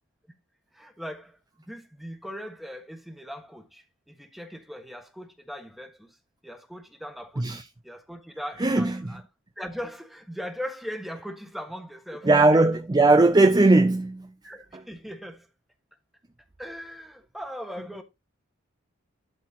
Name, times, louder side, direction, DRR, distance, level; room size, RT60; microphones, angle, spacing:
voice 1, 0.7-1.4 1.7-6.2 6.4-9.2 9.6-12.3 14.4-15.5 16.6-18.0, equal, ahead, 1.4 m, -39 dB
voice 2, 8.6-9.1 12.2-14.3, right 2 dB, 20° right, 0.4 m, -19 dB
12.0 x 4.3 x 4.2 m
head